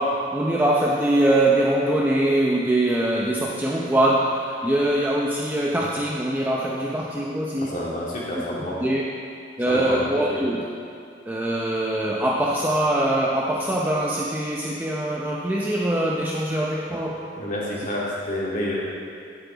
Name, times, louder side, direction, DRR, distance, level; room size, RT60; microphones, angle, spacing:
voice 1, 0.0-7.7 8.8-9.0 9.6-10.6 11.3-17.3, right 1 dB, 10° right, -4 dB, 0.7 m, -23 dB
voice 2, 7.6-8.8 9.7-10.0 10.3-10.4 17.4-18.7, left 1 dB, 45° left, -6 dB, 2.9 m, -29 dB
17.0 x 8.3 x 4.0 m, 2.4 s
head